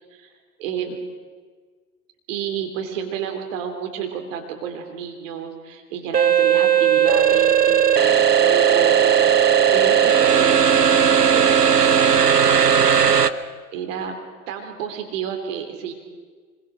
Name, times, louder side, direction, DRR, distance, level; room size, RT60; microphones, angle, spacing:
voice 1, 0.6-1.0 2.3-10.6 11.2-12.2 12.4-13.4 13.7-14.2 14.5-15.9, right 8 dB, 55° right, 4 dB, 3.5 m, -31 dB
sound 1, 6.1-13.3, right 8 dB, 90° right, 0.9 m, -16 dB
25.5 x 22.5 x 6.3 m, 1.5 s
figure-of-eight pair, 90°, 46 cm